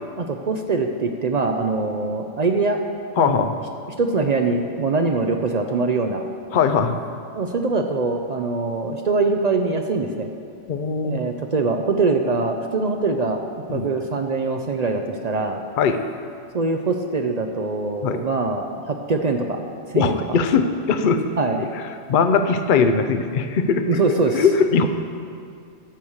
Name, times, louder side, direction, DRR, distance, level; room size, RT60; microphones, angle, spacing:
voice 1, 0.2-2.8 3.2-3.5 4.0-6.2 7.3-10.3 11.0-13.4 13.7-15.6 16.5-19.6 19.9-20.2 21.4-21.8 23.8-24.5, right 3 dB, 60° right, 4 dB, 0.4 m, -23 dB
voice 2, 3.2-3.5 6.5-6.9 10.7-11.2 13.7-13.9 15.8-16.0 18.0-18.2 19.9-21.3 22.1-23.9 24.3-24.9, left 5 dB, 50° left, 8 dB, 0.6 m, -20 dB
10.0 x 6.3 x 7.2 m, 2.3 s
omnidirectional pair, 1.4 m